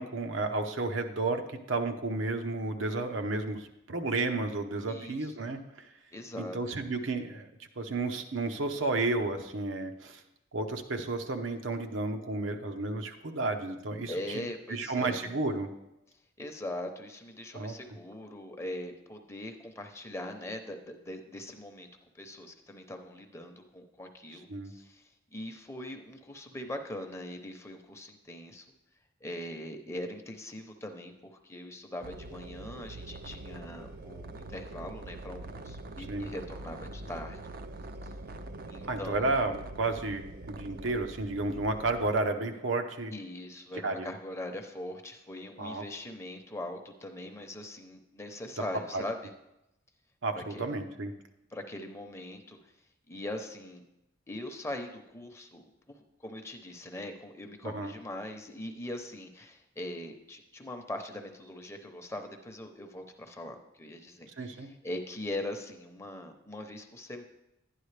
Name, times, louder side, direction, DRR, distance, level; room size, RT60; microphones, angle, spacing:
voice 1, 0.0-1.4 1.7-5.9 6.4-7.5 7.8-10.2 10.5-14.1 14.7-15.7 17.5-17.7 24.5-24.7 36.1-36.3 38.8-43.1 43.8-44.1 45.6-45.8 48.9-49.0 50.2-51.1 57.6-57.9 64.4-64.7, right 3 dB, 80° right, 5 dB, 0.9 m, -32 dB
voice 2, 4.9-5.5 6.1-6.8 14.1-15.3 16.4-21.9 22.1-28.6 29.2-37.4 38.0-38.1 38.7-39.3 43.1-49.3 50.3-50.7 51.5-52.6 53.1-53.8 54.3-67.2, left 1 dB, 15° left, 5 dB, 0.8 m, -41 dB
sound 1, 32.0-42.1, right 2 dB, 50° right, 0.5 m, -44 dB
11.5 x 9.8 x 3.3 m, 0.89 s
head